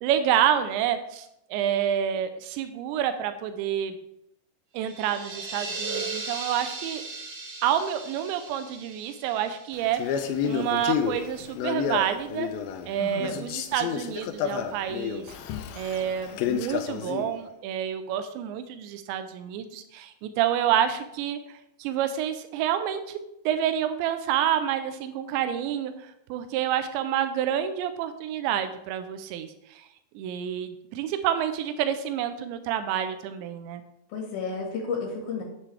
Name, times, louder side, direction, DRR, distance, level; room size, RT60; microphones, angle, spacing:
voice 1, 0.0-3.9 4.7-7.0 7.6-12.5 12.8-15.4 15.8-21.4 21.8-23.2 23.5-29.9 30.2-33.8, right 10 dB, 90° right, 9 dB, 2.9 m, -28 dB
sound 1, 4.8-10.4, right 3 dB, 60° right, 4.3 m, -37 dB
Male speech man speaking, 9.9-12.9 13.2-17.3, left 8 dB, 85° left, 2.2 m, -30 dB
voice 2, 13.0-13.4 34.1-35.4, left 4 dB, 65° left, -1 dB, 3.1 m, -32 dB
9.8 x 8.6 x 3.4 m, 0.81 s
omnidirectional pair, 5.0 m